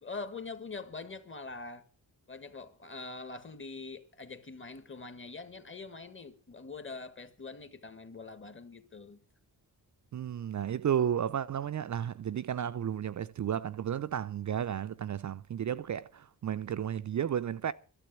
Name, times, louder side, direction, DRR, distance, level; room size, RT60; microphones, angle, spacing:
voice 1, 0.0-1.8 2.3-9.2, left 3 dB, 30° left, 1.6 m, -44 dB
voice 2, 10.1-17.7, right 9 dB, 50° right, 0.5 m, -33 dB
12.5 x 7.7 x 9.2 m
wide cardioid pair, 100°, 38 cm